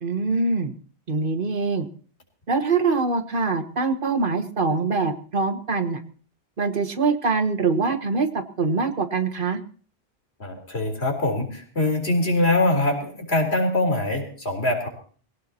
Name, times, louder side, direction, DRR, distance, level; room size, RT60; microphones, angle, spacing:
voice 1, 0.0-0.7 1.1-1.9 2.5-6.0 6.6-9.6, right 4 dB, 55° right, 8 dB, 1.4 m, -24 dB
voice 2, 10.4-14.9, left 2 dB, 90° left, 1 dB, 4.3 m, -23 dB
22.0 x 17.5 x 3.0 m, 0.42 s
omnidirectional pair, 1.0 m